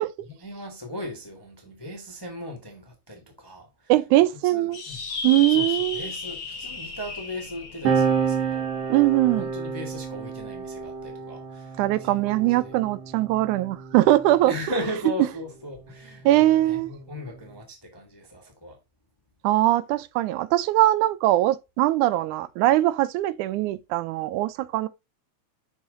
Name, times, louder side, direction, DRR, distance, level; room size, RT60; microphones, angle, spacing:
voice 1, 0.2-3.9 4.4-5.1 5.5-8.7 9.2-12.2 12.6-12.8 14.5-18.8, left 1 dB, 15° left, 0.9 m, -37 dB
voice 2, 3.9-4.8 5.2-6.1 8.9-9.5 11.8-14.5 16.3-16.9 19.4-24.9, right 15 dB, 80° right, 2.0 m, -21 dB
sound 1, 4.7-9.5, left 5 dB, 90° left, 0.6 m, -34 dB
sound 2, 7.9-14.8 15.7-17.6, right 6 dB, 55° right, 2.5 m, -30 dB
6.3 x 6.0 x 3.6 m
omnidirectional pair, 3.5 m